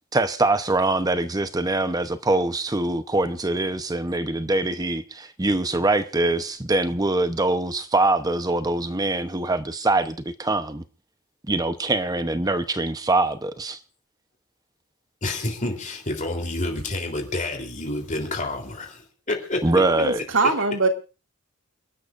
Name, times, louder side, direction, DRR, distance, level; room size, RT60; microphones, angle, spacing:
voice 1, 0.1-10.8 11.5-13.8 19.6-20.2, right 2 dB, 20° right, 0.8 m, -23 dB
voice 2, 15.2-19.6, left 2 dB, 35° left, 3.4 m, -29 dB
voice 3, 19.7-20.9, right 3 dB, 65° right, 2.4 m, -23 dB
29.0 x 12.0 x 2.5 m
head